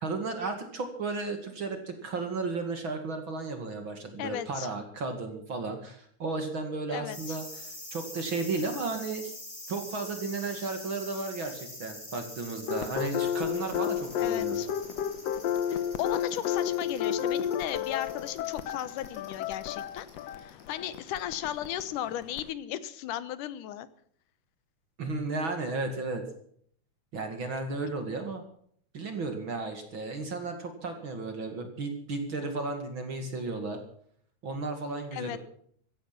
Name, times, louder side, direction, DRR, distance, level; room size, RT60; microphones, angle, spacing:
voice 1, 0.0-9.3 9.7-14.6 25.0-26.2 27.1-28.4 28.9-33.8 34.4-35.4, right 3 dB, 45° right, 6 dB, 2.6 m, -34 dB
voice 2, 4.2-4.7 6.9-7.4 14.2-14.7 15.7-20.1 20.4-23.9 35.1-35.4, left 11 dB, 85° left, 15 dB, 2.5 m, -35 dB
sound 1, 7.1-21.2 21.5-21.6, left 1 dB, 15° left, 6.0 m, -45 dB
sound 2, 12.7-22.5, left 9 dB, 70° left, 1.8 m, -32 dB
15.5 x 15.5 x 5.9 m, 0.63 s
omnidirectional pair, 3.6 m